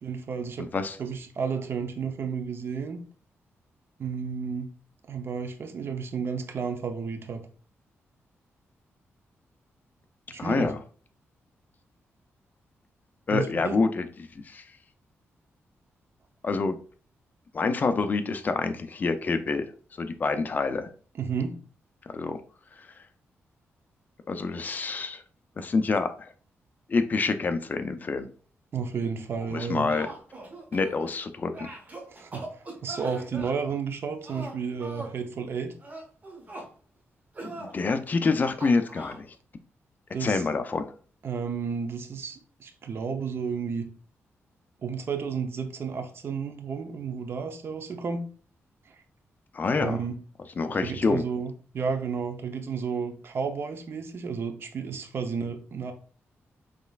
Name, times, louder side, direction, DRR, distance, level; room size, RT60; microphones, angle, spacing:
voice 1, 0.0-0.7 1.0-3.0 4.0-4.7 5.1-7.4 10.3-10.7 13.3-13.8 21.1-21.6 28.7-29.9 32.1-35.7 40.1-40.5 41.2-43.9 44.8-48.2 48.9-49.0 49.8-50.2 50.8-55.9, right 6 dB, 55° right, 6 dB, 0.7 m, -32 dB
voice 2, 0.6-1.0 10.4-10.8 13.3-14.1 14.4-14.6 16.4-16.8 17.5-19.7 20.0-20.9 22.1-22.4 24.3-25.2 25.6-26.3 26.9-28.3 29.5-30.1 30.7-31.7 37.4-39.3 40.2-40.9 49.5-50.0 50.6-51.2, left 4 dB, 35° left, 8 dB, 0.5 m, -27 dB
sound 1, 29.6-31.2 31.5-33.5 34.2-35.2 35.8-36.7 37.3-37.7 38.6-39.2, right 2 dB, 35° right, 1.2 m, -41 dB
5.1 x 3.3 x 2.4 m, 0.41 s
wide cardioid pair, 120°, 5 cm